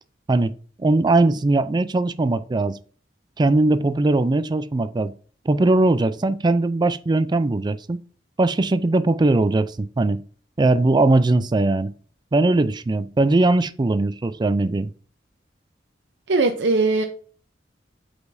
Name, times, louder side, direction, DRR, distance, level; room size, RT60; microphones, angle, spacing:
voice 1, 0.3-2.8 3.4-5.1 5.5-8.0 8.4-10.2 10.6-11.9 12.3-14.9, right 2 dB, 25° right, 0.4 m, -20 dB
voice 2, 16.3-17.0, right 3 dB, 70° right, 0.7 m, -19 dB
8.2 x 5.0 x 2.7 m
head